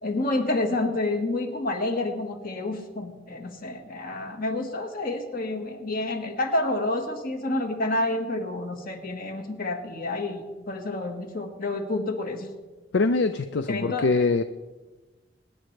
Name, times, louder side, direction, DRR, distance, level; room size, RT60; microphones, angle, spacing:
voice 1, 0.0-12.5 13.6-14.1, left 2 dB, 50° left, 4 dB, 1.6 m, -29 dB
voice 2, 12.9-14.4, left 3 dB, 65° left, 10 dB, 0.5 m, -23 dB
24.5 x 10.0 x 3.3 m, 1.3 s
head